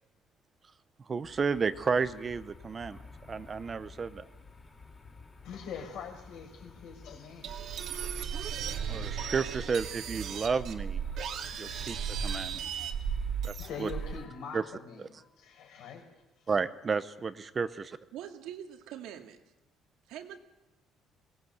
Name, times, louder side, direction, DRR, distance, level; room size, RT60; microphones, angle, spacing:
voice 1, 1.1-3.0 3.3-4.3 8.9-11.0 11.6-12.8 13.4-13.5 13.8-13.9 14.5-14.6 16.5-18.0, right 5 dB, 25° right, 13 dB, 0.7 m, -32 dB
sound 1, 1.2-14.2, left 4 dB, 20° left, 3.1 m, -52 dB
voice 2, 5.4-7.8 13.6-16.1 16.4-16.5, left 6 dB, 70° left, 4 dB, 4.8 m, -43 dB
sound 2, 7.4-14.2, right 7 dB, 55° right, 2.1 m, -35 dB
voice 3, 18.1-19.4 20.1-20.4, right 10 dB, 85° right, 5 dB, 2.1 m, -43 dB
23.0 x 18.5 x 8.0 m, 1.1 s
cardioid pair, 155°, 0 cm